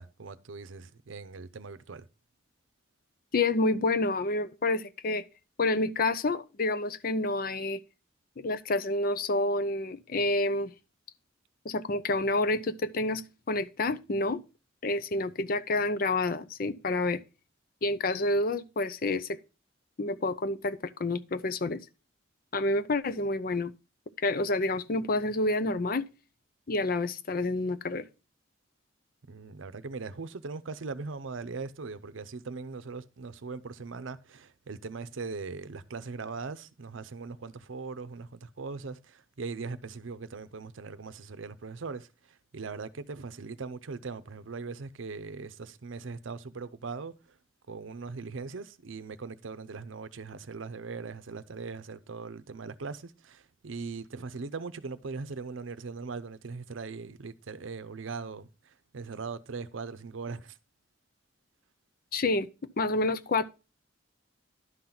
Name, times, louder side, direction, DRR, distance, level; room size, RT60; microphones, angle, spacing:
voice 1, 0.0-2.1 29.3-42.1 42.5-47.1 47.7-58.5 58.9-60.6, right 4 dB, 80° right, 0.6 m, -40 dB
voice 2, 3.3-5.2 5.6-7.8 8.4-10.7 11.6-14.4 14.8-17.2 17.8-19.4 20.0-21.8 22.5-23.7 24.2-26.0 26.7-28.1 62.1-62.5 62.8-63.4, left 2 dB, 50° left, 0.5 m, -28 dB
11.0 x 3.9 x 5.8 m
head